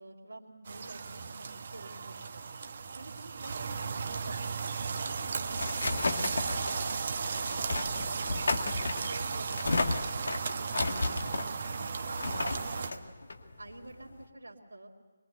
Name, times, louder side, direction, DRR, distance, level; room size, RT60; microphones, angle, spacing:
voice 1, 0.0-2.5 2.9-5.7 6.1-8.5 9.1-11.4 11.9-13.2 13.6-14.9, right 2 dB, 75° right, -6 dB, 3.0 m, -49 dB
sound 1, 0.7-12.9, right 5 dB, 45° right, 1.2 m, -35 dB
sound 2, 5.0-14.2, left 3 dB, 60° left, 1.7 m, -34 dB
23.5 x 23.0 x 8.0 m, 1.4 s
figure-of-eight pair, 150°, 0 cm